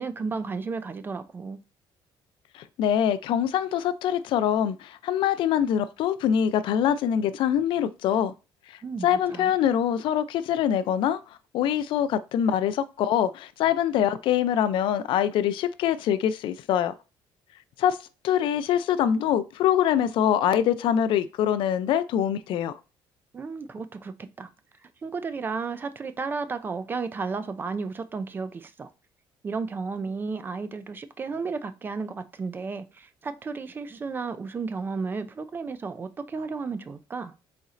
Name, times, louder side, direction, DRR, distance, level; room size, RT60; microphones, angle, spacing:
voice 1, 0.0-1.6 8.8-9.5 23.3-24.5 25.0-28.9 29.4-37.3, right 4 dB, 20° right, 0.3 m, -33 dB
voice 2, 2.5-8.3 9.0-11.2 11.5-16.9 17.8-18.0 18.2-22.7, left 9 dB, 65° left, 0.4 m, -24 dB
4.2 x 3.9 x 2.5 m
cardioid pair, 165°, 9 cm